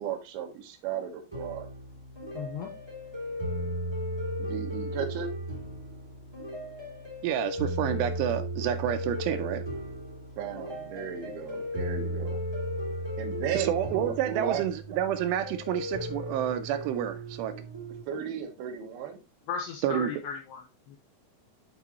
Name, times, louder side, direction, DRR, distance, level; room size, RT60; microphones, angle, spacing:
voice 1, 0.0-1.7 4.4-5.3 10.4-12.4 13.2-14.6 18.1-19.2, right 8 dB, 70° right, 2.7 m, -35 dB
sound 1, 1.3-18.0, equal, 15° right, 1.0 m, -36 dB
voice 2, 2.3-2.7 19.5-21.0, left 6 dB, 80° left, 2.4 m, -36 dB
voice 3, 7.2-9.6 13.5-17.5 19.8-20.1, right 10 dB, 85° right, 2.5 m, -29 dB
11.0 x 4.1 x 3.0 m
omnidirectional pair, 5.4 m